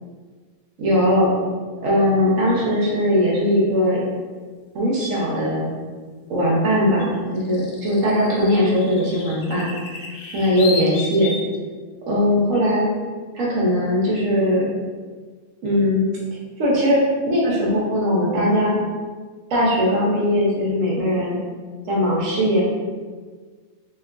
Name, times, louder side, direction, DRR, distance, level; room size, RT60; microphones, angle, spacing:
voice 1, 0.8-1.3 1.8-4.0 4.7-5.7 6.3-11.3 12.1-12.9 13.3-14.7 15.6-16.0 16.6-17.0 17.3-18.7 19.5-21.4 21.9-22.6, equal, 60° right, -5 dB, 1.0 m, -20 dB
sound 1, 2.6-2.8 5.2-5.3 7.0-11.6, left 3 dB, 80° left, 1.1 m, -33 dB
3.0 x 2.9 x 2.4 m, 1.5 s
omnidirectional pair, 1.7 m